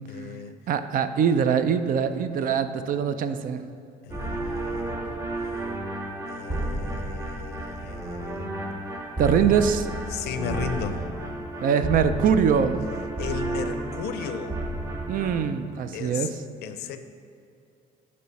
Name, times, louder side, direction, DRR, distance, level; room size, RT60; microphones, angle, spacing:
voice 1, 0.1-0.6 4.0-5.0 6.3-8.5 10.1-11.0 13.2-14.6 15.9-16.3 16.6-17.0, left 7 dB, 75° left, 9 dB, 0.5 m, -35 dB
voice 2, 0.7-3.6 9.2-9.9 11.6-12.8 15.1-16.4, right 7 dB, 55° right, 10 dB, 0.4 m, -23 dB
sound 1, 4.1-15.4, right 1 dB, 20° right, 0.7 m, -32 dB
9.4 x 3.2 x 5.8 m, 2.5 s
cardioid pair, 110°, 17 cm